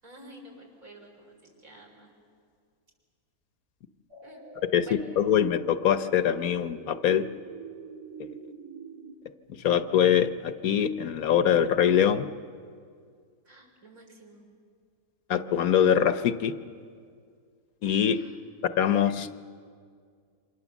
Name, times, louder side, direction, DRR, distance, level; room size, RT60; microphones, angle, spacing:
voice 1, 0.0-2.1 4.2-4.4 4.8-5.0 13.5-14.4 18.0-18.4, right 1 dB, 65° right, 0 dB, 5.2 m, -50 dB
sound 1, 4.1-9.1, right 5 dB, 90° right, 2.7 m, -45 dB
voice 2, 5.2-7.3 8.2-8.3 9.6-12.3 15.3-16.5 17.8-18.2 18.8-19.4, left 9 dB, 70° left, 11 dB, 1.3 m, -23 dB
28.5 x 25.5 x 7.2 m, 2.1 s
omnidirectional pair, 1.6 m